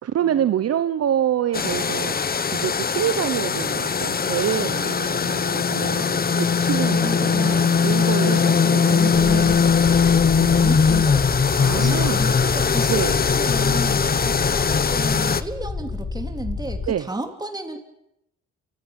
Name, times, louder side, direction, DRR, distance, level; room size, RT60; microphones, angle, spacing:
voice 1, 0.0-9.5 10.4-10.6 11.6-12.2 12.9-13.2 16.9-17.1, right 10 dB, 55° right, 12 dB, 1.0 m, -26 dB
sound 1, 1.5-15.4, left 6 dB, 30° left, 1.0 m, -20 dB
voice 2, 6.2-17.8, right 2 dB, 15° right, 5 dB, 3.6 m, -33 dB
sound 2, 9.1-16.9, left 4 dB, 50° left, 5.5 m, -31 dB
28.5 x 16.0 x 9.1 m, 0.83 s
cardioid pair, 90°, 30 cm